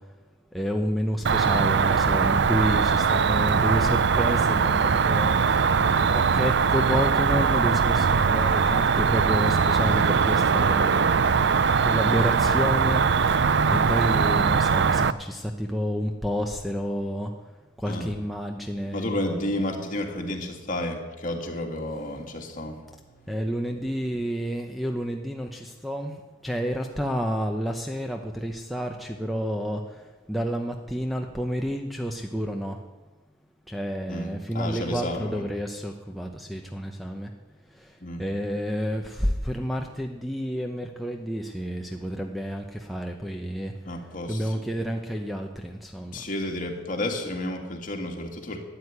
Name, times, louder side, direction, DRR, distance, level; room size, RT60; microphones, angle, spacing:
voice 1, 0.5-5.4 6.0-11.0 11.8-13.1 13.7-17.3 17.8-19.8 23.3-26.1 26.4-29.8 30.3-32.8 33.7-37.3 38.2-43.7 44.3-46.2, equal, ahead, 2 dB, 0.9 m, -30 dB
Cricket, 1.2-15.1, right 5 dB, 60° right, 0.5 m, -21 dB
voice 2, 18.9-22.9 23.2-23.3 34.1-35.4 38.0-38.2 43.9-44.6 46.1-48.6, left 1 dB, 40° left, 2 dB, 2.4 m, -31 dB
13.0 x 9.7 x 9.7 m, 1.2 s
head